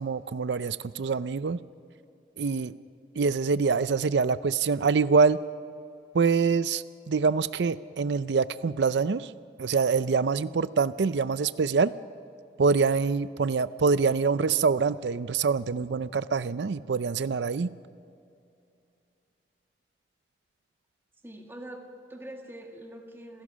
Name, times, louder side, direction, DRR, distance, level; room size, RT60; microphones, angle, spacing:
voice 1, 0.0-1.6 2.4-2.7 3.2-5.4 6.1-9.3 9.6-11.9 12.6-17.7, right 5 dB, 85° right, 15 dB, 0.5 m, -25 dB
voice 2, 21.2-23.4, right 1 dB, 15° right, 2 dB, 1.9 m, -44 dB
27.5 x 16.0 x 6.3 m, 2.5 s
head